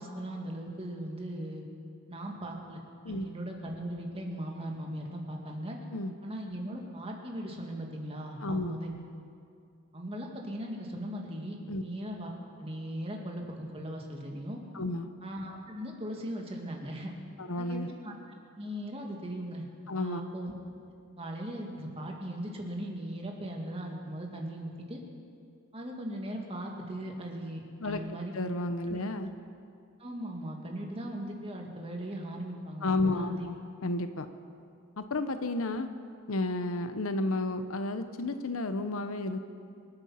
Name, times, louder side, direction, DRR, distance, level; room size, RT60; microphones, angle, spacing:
voice 1, 0.0-1.6 2.1-5.8 6.2-8.9 9.9-12.3 12.6-14.6 15.2-17.1 17.6-18.1 18.6-19.6 20.0-20.5 21.2-25.0 25.7-28.3 28.9-29.0 30.0-33.5, right 1 dB, 25° right, 0 dB, 2.1 m, -38 dB
voice 2, 8.4-8.7 11.7-11.8 14.7-15.1 17.4-17.9 19.9-20.2 27.8-28.0 28.3-29.3 32.8-33.6 33.8-34.3 35.0-35.9 36.3-39.4, left 2 dB, 75° left, 9 dB, 0.9 m, -32 dB
26.5 x 9.0 x 5.7 m, 2.4 s
head